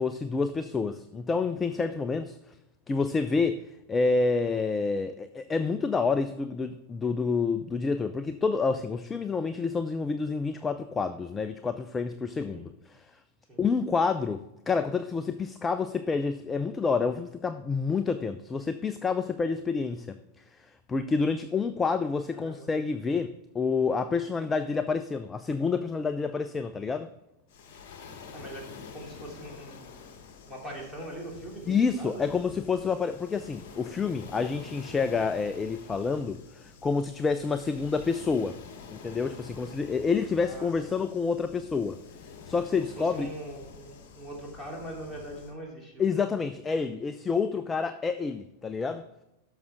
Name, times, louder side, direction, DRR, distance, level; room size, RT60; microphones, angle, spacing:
voice 1, 0.0-2.6 2.9-3.6 3.9-13.1 13.6-27.1 31.7-38.6 38.9-42.0 42.5-43.3 46.0-49.0, left 4 dB, 15° left, 11 dB, 0.4 m, -28 dB
voice 2, 22.3-22.7 28.3-28.7 28.9-29.8 30.5-32.2 40.4-41.0 42.7-46.0, right 1 dB, ahead, -4 dB, 3.2 m, -42 dB
Waves surf, 27.5-45.5, left 5 dB, 45° left, 1.3 m, -48 dB
12.0 x 6.4 x 3.5 m, 0.90 s
figure-of-eight pair, 90°, 0 cm